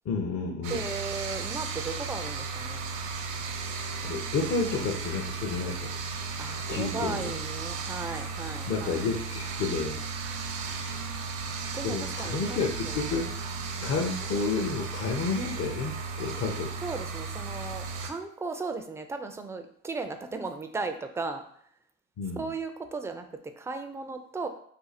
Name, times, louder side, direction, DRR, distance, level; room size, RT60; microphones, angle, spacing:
voice 1, 0.1-0.8 4.0-5.9 6.7-7.4 8.7-10.0 11.8-13.3 13.8-16.7 22.2-22.5, left 4 dB, 45° left, 0 dB, 0.6 m, -30 dB
sound 1, 0.6-18.1, right 4 dB, 60° right, 0.6 m, -35 dB
voice 2, 0.7-2.8 6.4-9.0 11.7-13.0 13.8-13.9 16.8-21.4 22.4-23.3 23.6-24.5, right 3 dB, 10° right, 7 dB, 0.4 m, -36 dB
2.7 x 2.3 x 4.1 m, 0.64 s
hypercardioid pair, 70°, 35 cm